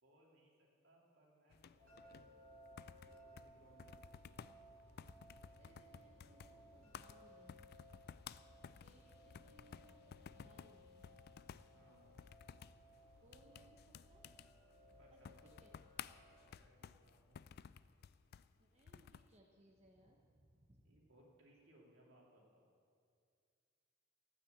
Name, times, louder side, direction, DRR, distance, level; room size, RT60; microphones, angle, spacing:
voice 1, 0.0-2.6 3.3-4.6 8.3-8.6 11.7-12.2 15.0-15.5 16.5-17.5 20.8-22.7, right 1 dB, 70° right, -2 dB, 2.8 m, -69 dB
sound 1, 1.5-19.3, left 7 dB, 55° left, 0.3 m, -56 dB
sound 2, 1.8-16.5, right 1 dB, 85° right, 4.1 m, -63 dB
voice 2, 5.6-7.7 8.0-8.2 8.8-11.3 11.7-11.9 13.2-14.2 14.8-15.7 18.6-21.0, right 1 dB, 35° right, -1 dB, 1.1 m, -68 dB
14.0 x 9.3 x 7.9 m, 2.4 s
head